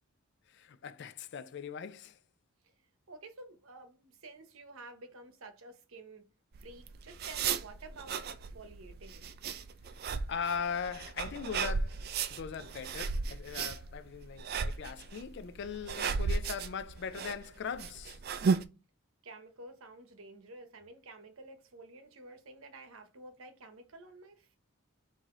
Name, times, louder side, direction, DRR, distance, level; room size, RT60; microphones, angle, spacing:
voice 1, 0.5-2.2 10.3-18.2, left 6 dB, 55° left, 0.4 m, -40 dB
voice 2, 3.1-6.2 6.6-9.2 19.2-24.6, right 2 dB, 75° right, 0.9 m, -51 dB
sound 1, 6.5-18.6, right 5 dB, 45° right, 0.3 m, -35 dB
4.8 x 2.7 x 3.6 m
head